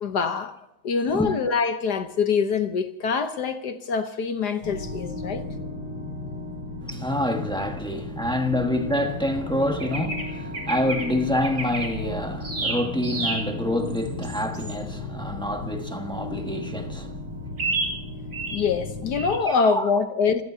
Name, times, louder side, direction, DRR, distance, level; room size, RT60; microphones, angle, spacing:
voice 1, 0.0-0.5 0.8-5.4 18.5-20.4, left 5 dB, 55° left, 1.4 m, -24 dB
sound 1, 4.6-19.3, left 2 dB, 75° left, 6.3 m, -35 dB
voice 2, 6.8-17.1 19.5-19.9, left 1 dB, 5° left, 1.1 m, -27 dB
sound 2, 9.8-10.3 10.5-11.1 11.4-11.9 12.4-13.4 13.9-14.7 17.6-17.9 18.3-18.6 19.1-19.4, right 3 dB, 40° right, 3.5 m, -29 dB
28.0 x 17.0 x 2.8 m
omnidirectional pair, 2.3 m